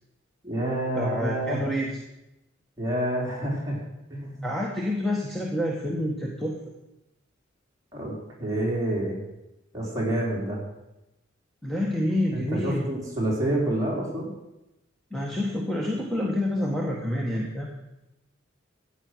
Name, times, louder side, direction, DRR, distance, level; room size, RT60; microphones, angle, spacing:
voice 1, 0.4-1.6 2.8-3.8 4.1-4.5 7.9-8.1 8.4-9.2 9.7-10.6 12.3-14.3, right 1 dB, 15° right, -4 dB, 4.1 m, -28 dB
voice 2, 1.0-2.0 4.4-6.6 11.6-12.9 15.1-17.7, left 1 dB, ahead, -2 dB, 1.4 m, -28 dB
14.5 x 8.9 x 6.2 m, 0.93 s
head